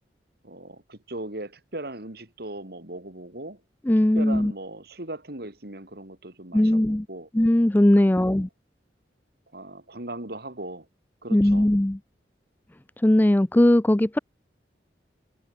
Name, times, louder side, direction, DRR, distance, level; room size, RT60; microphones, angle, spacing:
voice 1, 0.4-3.6 4.1-7.3 8.0-8.4 9.5-10.9 11.2-11.7, right 1 dB, 60° right, 3.7 m, -38 dB
voice 2, 3.9-4.5 6.5-7.1 7.3-8.5 11.3-12.0 13.0-14.2, left 1 dB, 10° left, 0.4 m, -19 dB
head